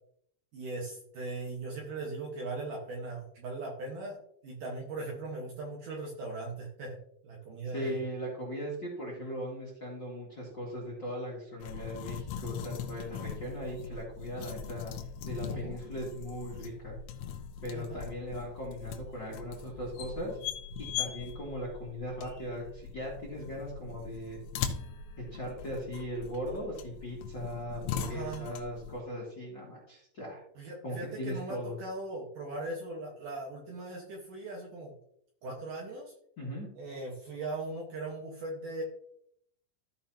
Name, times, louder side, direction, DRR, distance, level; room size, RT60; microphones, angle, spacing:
voice 1, 0.5-7.0 7.2-8.0 15.5-15.8 17.7-18.1 28.0-28.5 30.6-34.9 35.4-36.1 36.7-38.8, right 2 dB, 60° right, -1 dB, 2.4 m, -39 dB
voice 2, 7.7-14.9 15.2-17.0 17.6-20.4 20.8-24.4 25.3-30.4 30.8-31.8 36.4-36.7, equal, 40° left, -4 dB, 1.8 m, -39 dB
sound 1, 11.6-29.0, left 7 dB, 80° left, 2.8 m, -40 dB
14.5 x 5.2 x 2.8 m, 0.69 s
omnidirectional pair, 5.2 m